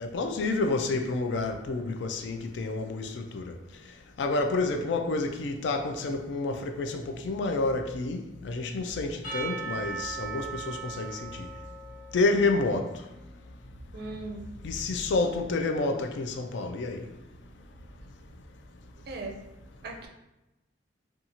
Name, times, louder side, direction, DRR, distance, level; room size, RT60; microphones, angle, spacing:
voice 1, 0.0-3.5 4.2-11.5 12.1-12.9 14.6-17.0, left 3 dB, 65° left, 0.3 m, -29 dB
Percussion / Church bell, 9.2-12.9, right 5 dB, 45° left, 1.0 m, -38 dB
voice 2, 13.9-14.5 19.1-19.4 19.8-20.1, right 2 dB, 55° right, 0.4 m, -37 dB
2.6 x 2.3 x 2.8 m
head